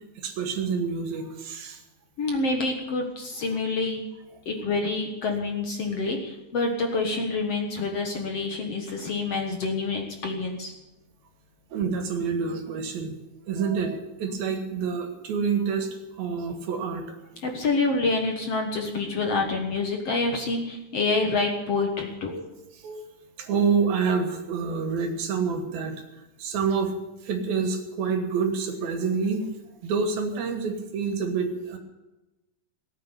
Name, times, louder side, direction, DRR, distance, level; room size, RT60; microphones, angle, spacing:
voice 1, 0.2-1.8 11.7-13.1 13.5-15.9 16.2-17.1 19.0-19.4 22.3-22.4 22.8-23.1 23.4-26.0 26.4-26.9 27.2-29.5 29.8-31.8, right 5 dB, 75° right, 5 dB, 3.8 m, -27 dB
voice 2, 2.2-4.0 4.5-10.7 17.4-22.3, left 3 dB, 50° left, 3 dB, 2.1 m, -27 dB
18.0 x 9.5 x 8.3 m, 1.0 s
omnidirectional pair, 4.2 m